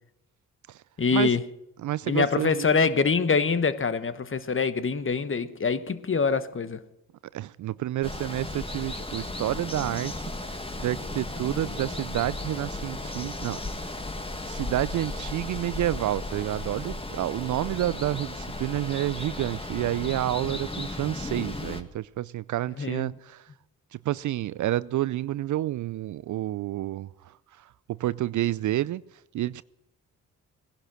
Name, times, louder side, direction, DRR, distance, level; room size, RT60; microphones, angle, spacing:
voice 1, 1.0-1.4 2.1-6.8 22.8-23.1, left 5 dB, 35° left, 1.2 m, -25 dB
voice 2, 1.8-2.8 7.3-13.6 14.5-23.5 23.9-29.0 29.3-29.6, right 14 dB, 50° right, 0.5 m, -29 dB
Water, 8.0-21.8, left 2 dB, 15° left, 1.7 m, -35 dB
18.0 x 11.5 x 6.3 m
hypercardioid pair, 45°, 38 cm